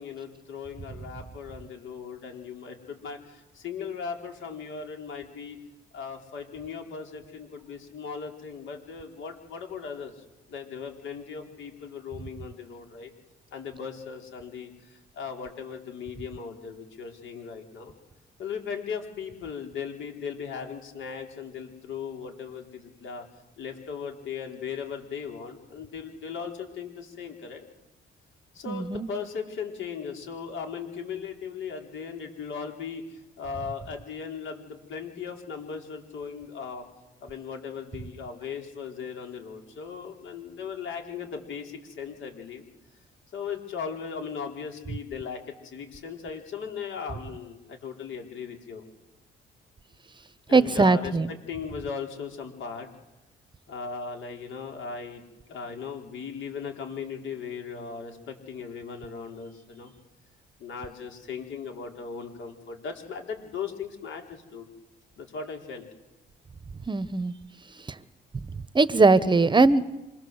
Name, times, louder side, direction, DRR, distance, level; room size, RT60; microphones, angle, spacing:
voice 1, 0.0-5.6 5.9-10.1 10.5-13.1 13.5-17.9 18.4-23.2 23.6-27.6 28.5-36.8 37.2-42.6 43.3-48.8 50.5-52.9 53.7-55.2 55.5-59.9 60.6-64.7 65.2-65.9, left 6 dB, 75° left, 3 dB, 4.5 m, -38 dB
voice 2, 28.7-29.1 50.5-51.3 66.9-67.3 68.7-69.8, right 3 dB, 25° right, 15 dB, 0.9 m, -20 dB
26.5 x 20.0 x 7.9 m, 1.0 s
cardioid pair, 90°, 20 cm